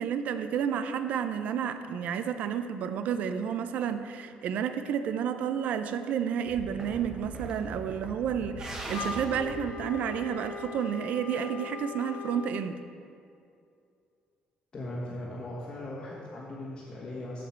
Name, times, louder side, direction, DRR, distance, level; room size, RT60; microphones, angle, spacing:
voice 1, 0.0-12.8, right 8 dB, 65° right, 10 dB, 0.5 m, -31 dB
sound 1, 6.5-10.7, right 2 dB, 25° right, 1.2 m, -41 dB
Wind instrument woodwind instrument, 8.9-12.6, left 5 dB, 75° left, 0.7 m, -40 dB
voice 2, 14.7-17.4, left 1 dB, 30° left, -6 dB, 1.5 m, -38 dB
14.5 x 5.2 x 4.5 m, 2.4 s
cardioid pair, 155°, 3 cm